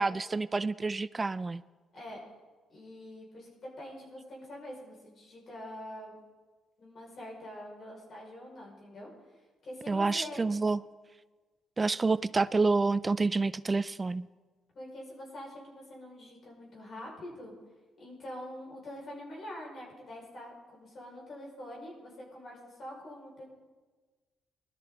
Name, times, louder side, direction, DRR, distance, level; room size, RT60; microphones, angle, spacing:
voice 1, 0.0-1.6 9.9-10.8 11.8-14.3, right 3 dB, 25° right, 18 dB, 0.4 m, -28 dB
voice 2, 2.7-6.2 6.8-9.1 9.6-10.4 14.7-17.5 18.0-23.5, left 1 dB, 55° left, -2 dB, 5.5 m, -45 dB
20.5 x 12.5 x 3.9 m, 1.3 s
cardioid pair, 90°, 0 cm